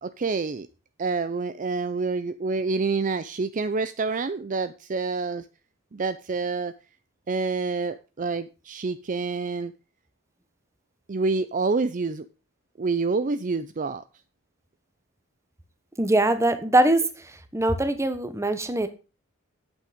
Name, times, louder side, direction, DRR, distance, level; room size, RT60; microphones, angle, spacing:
voice 1, 0.0-0.7 1.0-5.4 5.9-6.7 7.3-9.7 11.1-12.3 12.8-14.0, right 4 dB, 40° right, 12 dB, 0.5 m, -27 dB
voice 2, 16.0-17.1 17.5-18.9, right 1 dB, 15° right, 10 dB, 1.1 m, -22 dB
9.0 x 8.4 x 5.1 m, 0.32 s
head